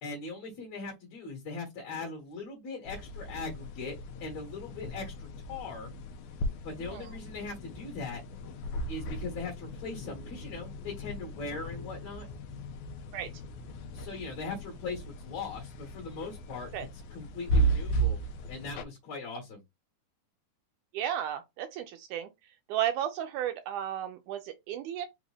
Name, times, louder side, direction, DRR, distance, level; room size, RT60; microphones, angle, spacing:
voice 1, 0.0-5.9 6.6-8.2 8.9-12.3 13.9-16.7 17.1-18.2 18.5-19.6, left 3 dB, 60° left, 2.4 m, -40 dB
sound 1, 2.9-18.8, right 2 dB, 80° left, 1.9 m, -35 dB
voice 2, 20.9-22.3 22.7-25.1, right 10 dB, 80° right, 1.9 m, -33 dB
5.2 x 2.5 x 3.3 m
omnidirectional pair, 3.8 m